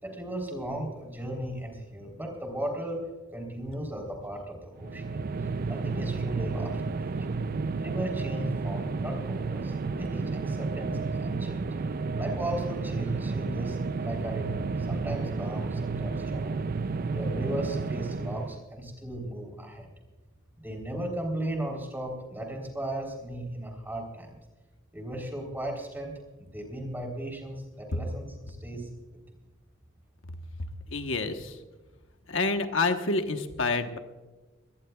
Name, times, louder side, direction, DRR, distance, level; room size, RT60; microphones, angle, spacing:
voice 1, 0.0-3.1 3.3-5.3 5.7-7.5 7.8-11.7 12.2-16.6 17.1-19.9 20.6-24.4 24.9-28.9, right 1 dB, 10° right, 2 dB, 3.6 m, -36 dB
sound 1, 4.8-18.6, right 4 dB, 45° right, 0.4 m, -31 dB
voice 2, 30.9-31.6 32.3-34.0, left 3 dB, 70° left, 6 dB, 1.1 m, -28 dB
23.5 x 18.5 x 2.3 m, 1.2 s
head